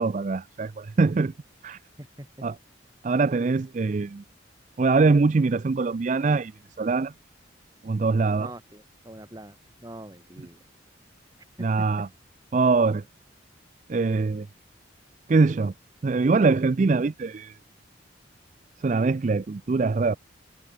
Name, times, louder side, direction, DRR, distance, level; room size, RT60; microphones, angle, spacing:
voice 1, 0.0-1.3 1.6-1.8 2.4-2.6 3.0-4.2 4.8-6.5 6.8-7.1 7.8-8.5 11.6-12.1 12.5-13.0 13.9-14.5 15.3-15.7 16.0-17.6 18.8-20.2, right 4 dB, 40° right, 0.4 m, -23 dB
voice 2, 8.4-9.6 9.8-10.6 11.6-11.7, right 1 dB, 20° right, 2.0 m, -43 dB
head